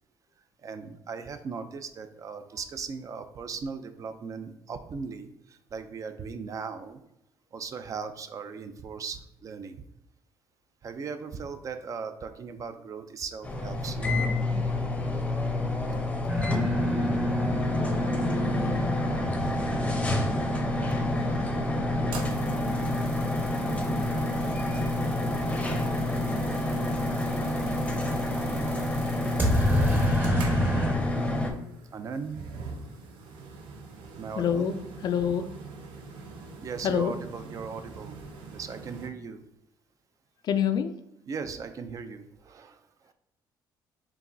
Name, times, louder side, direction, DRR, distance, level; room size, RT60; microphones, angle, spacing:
voice 1, 0.6-7.0 7.5-9.8 10.8-14.4 14.6-14.8 19.4-19.6 21.2-21.3 22.7-22.8 29.7-30.1 31.9-32.6 34.2-34.7 36.6-38.2 38.5-39.4 41.3-43.1, right 5 dB, 40° right, 9 dB, 0.4 m, -38 dB
sound 1, 13.4-31.5, left 1 dB, 15° left, 0.6 m, -28 dB
sound 2, 16.3-22.0 29.4-31.0, left 1 dB, 20° right, 0.9 m, -29 dB
sound 3, 22.0-39.1, right 4 dB, 75° right, 0.7 m, -45 dB
voice 2, 34.4-34.7 35.0-35.5 36.8-37.1 40.4-40.9, left 8 dB, 55° left, 10 dB, 0.3 m, -26 dB
4.6 x 3.0 x 2.6 m, 0.83 s
cardioid pair, 110°, 8 cm